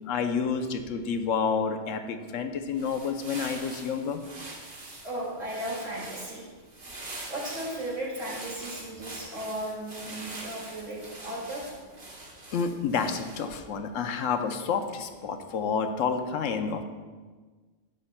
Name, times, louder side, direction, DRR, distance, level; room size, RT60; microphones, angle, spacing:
voice 1, 0.1-4.2 12.5-16.8, left 6 dB, 85° left, 7 dB, 1.0 m, -29 dB
sound 1, 2.6-13.6, right 2 dB, 45° right, 1.4 m, -43 dB
voice 2, 5.0-6.5 7.3-11.7, right 1 dB, 90° right, -5 dB, 2.7 m, -35 dB
10.5 x 7.1 x 2.2 m, 1.4 s
omnidirectional pair, 1.3 m